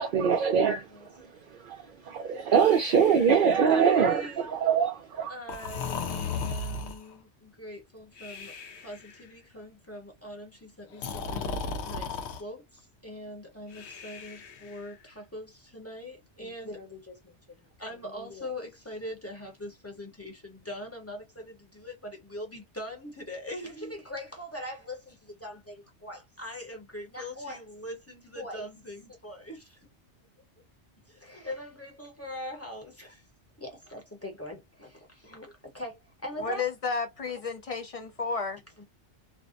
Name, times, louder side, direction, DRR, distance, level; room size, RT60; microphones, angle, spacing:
voice 1, 0.0-5.3, right 7 dB, 60° right, 0.6 m, -24 dB
Breathing, 2.5-4.1 5.5-7.1 8.2-9.1 10.9-12.4 13.7-14.9, left 4 dB, 75° left, 0.8 m, -36 dB
voice 2, 3.5-4.5 5.3-29.8 31.1-33.2 33.6-36.6 38.8-38.9, left 1 dB, 15° left, 0.7 m, -42 dB
voice 3, 36.4-38.6, left 5 dB, 50° left, 0.4 m, -32 dB
2.5 x 2.1 x 2.5 m
omnidirectional pair, 1.2 m